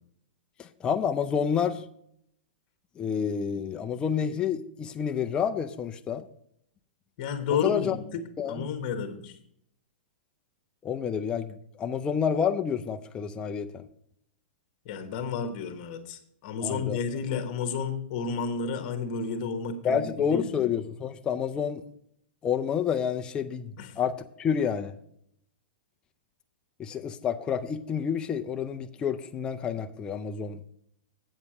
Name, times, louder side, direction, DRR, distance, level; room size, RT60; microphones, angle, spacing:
voice 1, 0.6-1.8 3.0-6.2 7.6-8.0 8.4-8.7 10.8-13.8 16.6-17.0 19.8-21.8 22.4-24.9 26.8-30.6, left 7 dB, 15° left, 5 dB, 0.4 m, -29 dB
voice 2, 7.2-8.2 8.5-9.3 14.8-20.7 23.8-23.9, left 6 dB, 40° left, 7 dB, 1.3 m, -31 dB
8.1 x 7.2 x 4.8 m, 0.70 s
hypercardioid pair, 155°, 6 cm